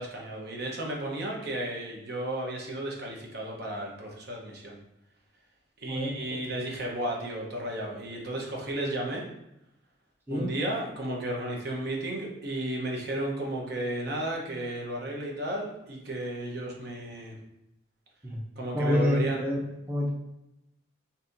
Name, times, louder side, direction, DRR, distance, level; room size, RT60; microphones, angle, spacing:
voice 1, 0.0-4.8 5.8-9.2 10.3-17.3 18.6-19.4, right 1 dB, 50° right, -1 dB, 0.8 m, -33 dB
voice 2, 5.9-6.4 10.3-10.5 18.2-18.4 18.7-19.6 19.9-20.1, left 1 dB, 10° right, -2 dB, 0.6 m, -27 dB
4.1 x 2.7 x 2.5 m, 0.88 s
head